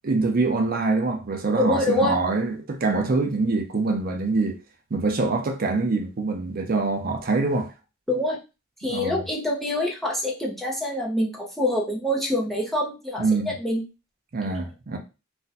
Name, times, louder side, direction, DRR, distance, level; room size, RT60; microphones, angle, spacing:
voice 1, 0.0-4.6 4.9-7.7 8.9-9.2 13.2-13.5 14.3-15.0, right 3 dB, 45° right, 0.5 m, -24 dB
voice 2, 1.6-2.2 8.1-8.4 8.8-13.8, left 1 dB, ahead, 0.6 m, -25 dB
2.6 x 2.2 x 4.0 m
head